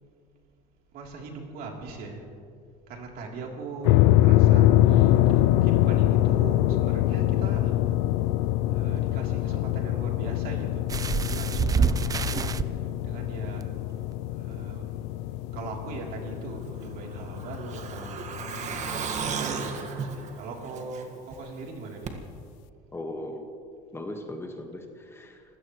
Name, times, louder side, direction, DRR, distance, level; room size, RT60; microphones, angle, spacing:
voice 1, 0.9-2.3 2.9-7.8 8.7-10.9 11.2-13.7 14.3-14.9 15.5-18.2 18.9-22.2, right 3 dB, 60° right, 0 dB, 3.4 m, -40 dB
sound 1, 3.8-19.1, left 14 dB, 85° left, 0.5 m, -24 dB
sound 2, 10.9-12.6 13.6-13.7 14.1-14.2, right 6 dB, 20° right, 0.4 m, -26 dB
Truck, 16.7-21.3 21.6-21.7 22.1-22.2, right 5 dB, 45° right, 1.7 m, -34 dB
voice 2, 22.9-23.5 23.9-25.4, left 1 dB, 15° left, 3 dB, 1.6 m, -38 dB
27.0 x 16.5 x 3.2 m, 2.3 s
supercardioid pair, 115°, 17 cm